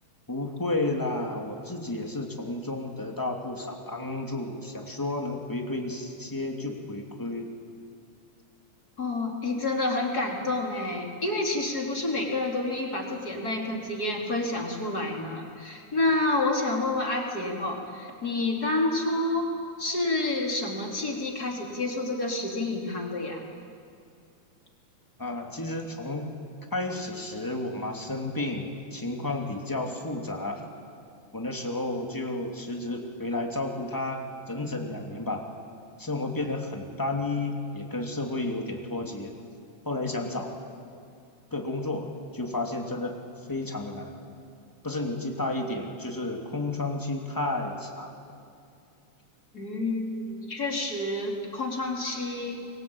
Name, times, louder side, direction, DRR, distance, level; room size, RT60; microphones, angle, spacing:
voice 1, 0.3-7.5 25.2-26.3 26.7-30.6 31.3-35.4 36.0-39.3 39.8-40.6 41.5-43.2 43.5-44.1 44.8-48.1, left 2 dB, 5° left, 2 dB, 2.5 m, -32 dB
voice 2, 9.0-19.5 19.8-23.4 49.5-52.7, left 2 dB, 30° left, 1 dB, 3.5 m, -29 dB
29.5 x 23.0 x 8.8 m, 2.5 s
omnidirectional pair, 3.4 m